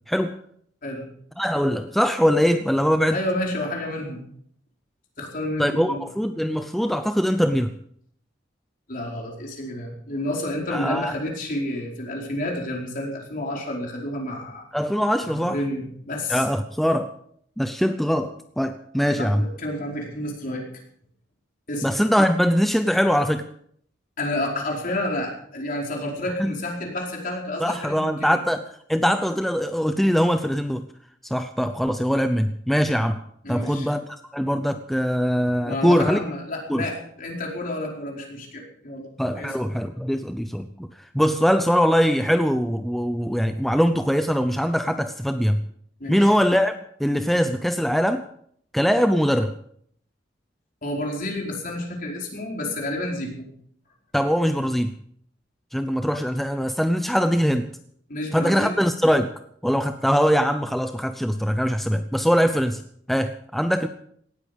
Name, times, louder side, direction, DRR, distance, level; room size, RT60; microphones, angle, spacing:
voice 1, 0.1-0.4 1.4-3.2 5.6-7.8 10.7-11.1 14.7-15.6 16.3-17.1 17.6-19.5 21.8-23.5 26.4-26.5 27.6-28.6 28.9-30.9 31.2-33.2 33.5-34.0 34.3-36.2 36.7-36.8 39.2-45.6 46.1-48.2 48.7-49.5 54.1-54.9 55.7-57.7 58.3-59.3 59.6-62.8 63.1-63.9, equal, ahead, 8 dB, 0.6 m, -22 dB
voice 2, 3.1-4.2 5.2-6.0 8.9-14.6 15.2-16.4 19.2-20.6 21.7-21.8 24.2-28.4 33.4-33.9 35.6-39.1 39.4-39.5 46.0-46.2 50.8-53.5 58.1-58.8, left 1 dB, 50° left, -1 dB, 4.8 m, -30 dB
18.0 x 13.5 x 5.3 m, 0.65 s
head